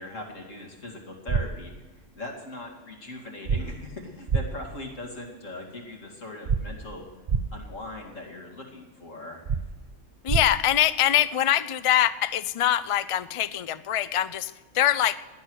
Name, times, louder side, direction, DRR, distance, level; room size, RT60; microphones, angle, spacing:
voice 1, 0.0-1.7 2.1-7.1 7.5-9.4, left 2 dB, 85° left, 0 dB, 2.9 m, -40 dB
sound 1, 1.3-1.4 3.5-3.6 4.3-4.4 6.5-6.6 7.3-7.4 9.5-9.6 10.3-10.4, right 5 dB, 45° right, 0.8 m, -23 dB
voice 2, 10.2-15.2, left 12 dB, 60° left, 15 dB, 0.3 m, -24 dB
18.0 x 10.5 x 6.4 m, 1.2 s
omnidirectional pair, 1.3 m